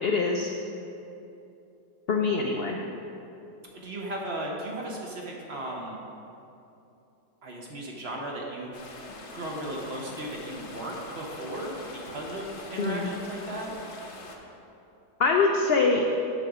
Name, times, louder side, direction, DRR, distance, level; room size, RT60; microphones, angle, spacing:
voice 1, 0.0-0.5 2.1-2.8 12.8-13.1 15.2-16.0, left 4 dB, 75° left, 1 dB, 0.5 m, -24 dB
voice 2, 3.7-6.0 7.4-8.8 9.3-13.7, right 1 dB, 45° right, -1 dB, 1.0 m, -36 dB
sound 1, 8.7-14.4, left 2 dB, 50° left, 1.0 m, -43 dB
7.7 x 6.5 x 4.8 m, 2.8 s
omnidirectional pair, 1.7 m